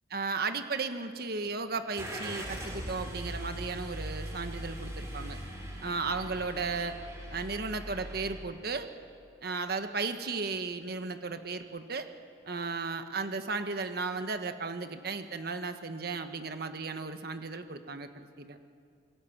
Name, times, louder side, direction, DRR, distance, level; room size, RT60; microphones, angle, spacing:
voice 1, 0.1-5.4 5.8-7.0 7.3-8.9 9.4-12.1 12.5-18.6, right 4 dB, 60° right, 8 dB, 1.4 m, -35 dB
Car / Engine starting, 1.9-8.4, right 1 dB, 15° right, 6.4 m, -40 dB
27.5 x 22.0 x 7.3 m, 2.3 s
head